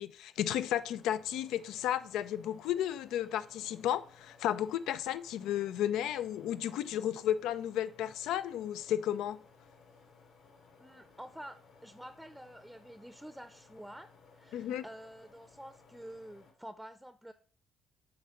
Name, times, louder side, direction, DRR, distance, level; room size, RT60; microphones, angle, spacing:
voice 1, 0.0-9.4 14.5-14.8, left 11 dB, 90° left, 0.5 m, -33 dB
sound 1, 0.6-16.5, left 4 dB, 70° left, 2.7 m, -61 dB
voice 2, 10.8-17.3, right 1 dB, 5° right, 0.6 m, -49 dB
7.9 x 4.3 x 6.5 m
cardioid pair, 90°, 0 cm